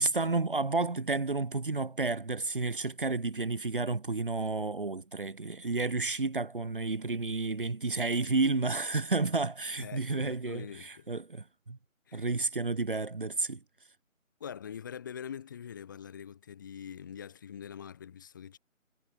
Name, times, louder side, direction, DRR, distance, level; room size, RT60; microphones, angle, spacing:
voice 1, 0.0-11.8 12.1-13.6, right 3 dB, 40° right, 4.5 m, -31 dB
voice 2, 9.8-11.1 12.1-12.2 14.4-18.6, left 8 dB, 15° left, 6.1 m, -44 dB
figure-of-eight pair, 170°, 42 cm